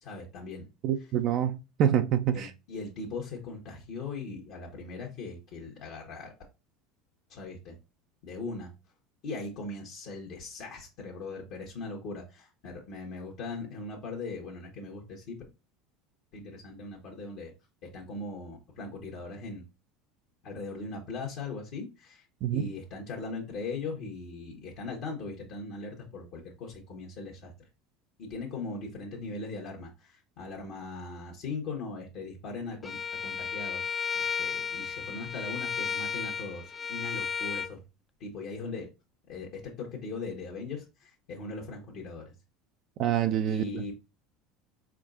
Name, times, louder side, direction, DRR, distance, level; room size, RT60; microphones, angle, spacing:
voice 1, 0.0-0.7 2.3-6.3 7.3-7.8 8.2-8.7 9.2-15.4 16.3-17.5 17.9-19.6 20.4-27.5 28.2-33.8 34.2-37.8 38.2-38.9 39.3-42.3 43.5-43.9, left 3 dB, 60° left, 1.2 m, -39 dB
voice 2, 0.8-2.5 22.4-22.7 43.0-43.8, right 10 dB, 55° right, 0.4 m, -26 dB
Bowed string instrument, 32.8-37.7, left 6 dB, 25° left, 0.4 m, -33 dB
4.5 x 3.6 x 2.5 m
hypercardioid pair, 80°, 0 cm